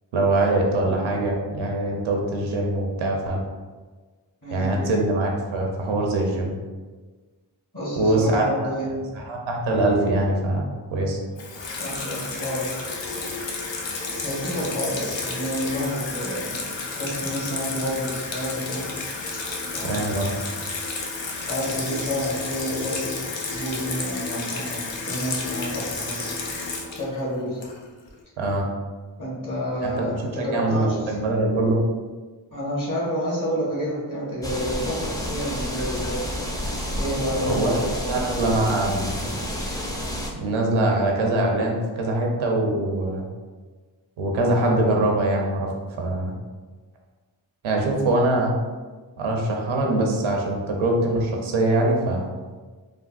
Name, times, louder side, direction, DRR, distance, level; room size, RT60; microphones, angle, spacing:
voice 1, 0.1-3.4 4.5-6.5 8.0-8.9 9.3-11.2 19.8-20.3 28.4-28.7 29.8-31.8 37.5-37.8 38.1-39.2 40.3-43.3 44.2-45.7 46.0-46.3 47.6-48.5 49.2-52.3, right 2 dB, 80° right, 0 dB, 0.6 m, -23 dB
voice 2, 4.4-4.8 7.7-8.9 11.8-12.7 14.0-18.9 19.7-20.0 21.3-23.1 23.5-26.3 26.9-27.6 29.2-31.1 32.5-36.5 36.9-38.2, equal, 40° left, -6 dB, 1.4 m, -29 dB
Water tap faucet / Sink (filling or washing), 11.4-28.1, left 3 dB, 70° left, 0.6 m, -31 dB
sound 1, 34.4-40.3, equal, 10° left, 0.5 m, -30 dB
3.4 x 2.1 x 2.3 m, 1.4 s
cardioid pair, 40°, 47 cm